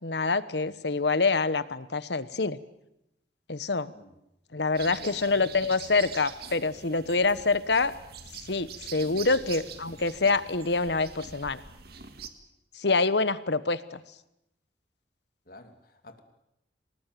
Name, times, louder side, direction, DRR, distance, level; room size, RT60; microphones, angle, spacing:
voice 1, 0.0-2.6 3.5-3.9 4.5-7.9 8.5-11.6 12.7-14.0, left 3 dB, 70° left, 15 dB, 1.2 m, -26 dB
sound 1, 4.7-12.3, right 7 dB, 60° right, 2.0 m, -44 dB
voice 2, 4.9-5.8 7.4-7.5 9.0-9.4 9.9-10.0 15.5-16.2, left 1 dB, 50° left, 7 dB, 2.8 m, -48 dB
26.0 x 19.5 x 9.3 m, 0.84 s
head